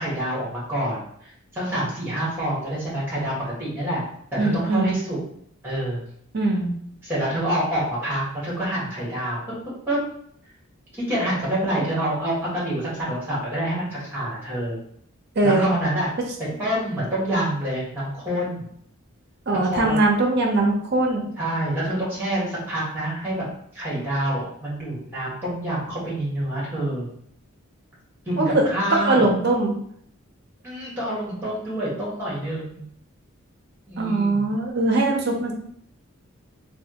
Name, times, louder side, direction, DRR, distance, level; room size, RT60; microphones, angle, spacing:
voice 1, 0.0-4.0 4.3-5.2 5.6-6.0 7.0-9.4 9.9-10.0 10.9-14.8 15.4-16.1 16.6-18.7 19.6-20.0 21.4-23.4 23.7-27.0 28.2-29.3 30.6-32.8 33.9-34.5, right 1 dB, 10° right, -7 dB, 1.3 m, -27 dB
voice 2, 4.4-4.9 6.3-6.7 15.4-15.7 19.5-21.3 28.4-28.7 29.0-29.8 34.0-35.5, right 2 dB, 50° right, 1 dB, 0.6 m, -21 dB
3.3 x 2.3 x 2.8 m, 0.67 s
head